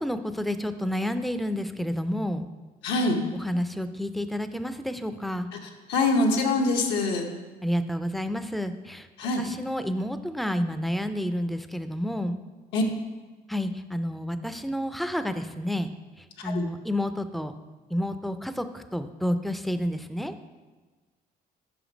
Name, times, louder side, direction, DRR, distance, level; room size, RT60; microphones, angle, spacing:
voice 1, 0.0-2.5 3.3-5.5 7.6-9.1 9.4-12.4 13.5-15.9 16.4-17.5 17.9-20.3, equal, ahead, 9 dB, 0.3 m, -30 dB
voice 2, 2.8-3.2 5.9-7.3 9.2-9.4 12.7-12.8 16.4-16.6, left 2 dB, 85° left, 1 dB, 0.8 m, -24 dB
5.7 x 5.1 x 5.0 m, 1.3 s
cardioid pair, 110°, 17 cm